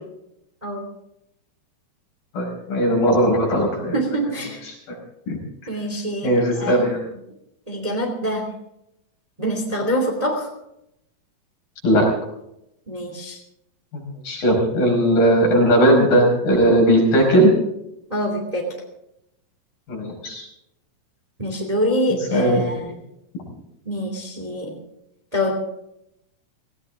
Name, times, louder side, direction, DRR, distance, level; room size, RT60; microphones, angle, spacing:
voice 1, 2.3-4.0 4.7-4.8 5.3-5.4 6.2-7.0 11.8-12.1 13.9-17.5 19.9-20.5 22.3-22.6, right 1 dB, 85° left, -1 dB, 7.2 m, -18 dB
voice 2, 3.9-4.6 5.7-6.8 7.7-8.5 9.4-10.5 12.9-13.4 18.1-18.6 21.4-23.0 23.8-24.7 25.3-25.5, equal, 10° right, 2 dB, 2.3 m, -25 dB
18.0 x 17.5 x 3.7 m, 0.81 s
omnidirectional pair, 4.0 m